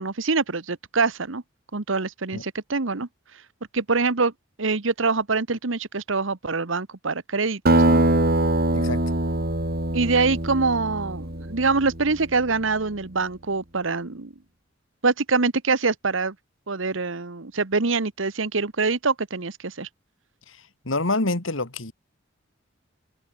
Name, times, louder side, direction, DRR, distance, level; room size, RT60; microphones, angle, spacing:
voice 1, 0.0-1.4 1.7-3.1 3.7-4.3 4.6-8.0 9.9-14.3 15.0-16.3 16.7-19.9, right 4 dB, 75° right, 1.3 m, -24 dB
Acoustic guitar, 7.7-12.5, right 1 dB, 50° right, 4.5 m, -23 dB
voice 2, 20.8-21.9, left 2 dB, 85° left, 2.9 m, -26 dB
open air
head